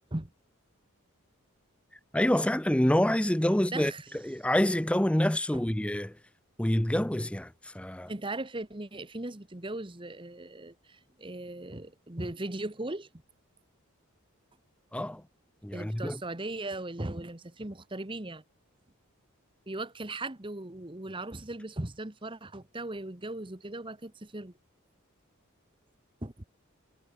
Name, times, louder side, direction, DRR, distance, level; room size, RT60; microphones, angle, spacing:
voice 1, 2.1-6.2 6.6-8.1 14.9-15.2 15.6-16.2, left 1 dB, 5° left, 0.5 m, -27 dB
voice 2, 3.5-4.0 5.5-5.6 8.1-13.1 15.7-18.4 19.7-24.5 26.2-26.4, right 2 dB, 20° right, 1.2 m, -38 dB
head